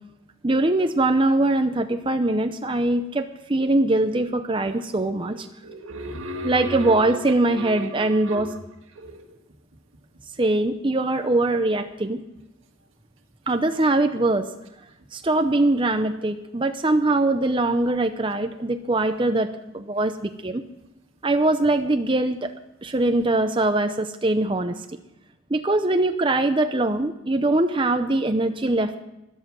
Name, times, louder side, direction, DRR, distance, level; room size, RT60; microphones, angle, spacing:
voice 1, 0.4-5.5 6.4-8.5 10.4-12.2 13.5-14.5 15.1-20.6 21.2-22.5 22.8-24.8 25.5-29.0, right 2 dB, 25° right, 7 dB, 0.6 m, -22 dB
voice 2, 5.3-8.6 8.9-9.4, equal, 80° right, 5 dB, 1.9 m, -36 dB
13.0 x 12.0 x 6.1 m, 0.96 s
head